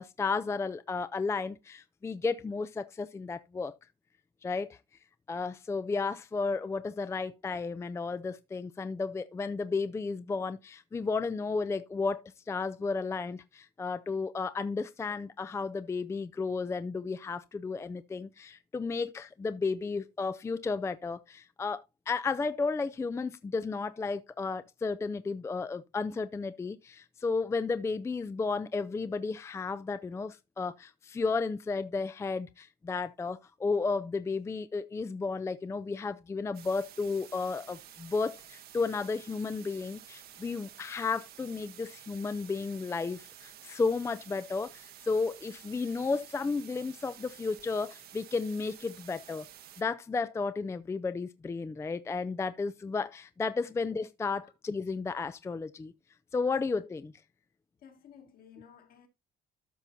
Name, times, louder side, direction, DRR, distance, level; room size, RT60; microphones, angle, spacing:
voice 1, 0.0-3.7 4.4-4.8 5.3-49.5 49.8-55.9 56.3-57.1, left 4 dB, 15° left, 0.4 m, -33 dB
sound 1, 36.5-49.8, right 11 dB, 70° right, 1.1 m, -52 dB
voice 2, 57.8-59.1, left 8 dB, 60° left, 2.1 m, -54 dB
13.0 x 5.5 x 2.6 m
cardioid pair, 110°, 17 cm